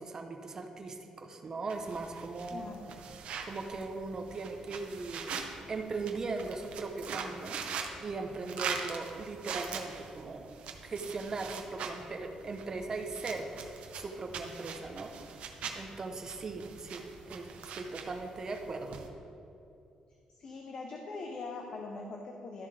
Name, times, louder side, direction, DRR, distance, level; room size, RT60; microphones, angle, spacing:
voice 1, 0.0-2.7 3.4-5.4 5.7-7.6 8.0-10.5 10.8-15.1 15.7-17.5 17.7-19.0, right 3 dB, 30° right, 4 dB, 0.7 m, -39 dB
sound 1, 1.7-19.1, right 6 dB, 65° right, 0.7 m, -43 dB
voice 2, 2.5-2.9 20.4-22.7, left 3 dB, 45° left, 1 dB, 0.7 m, -42 dB
12.5 x 7.2 x 3.3 m, 2.7 s
cardioid pair, 175°, 2 cm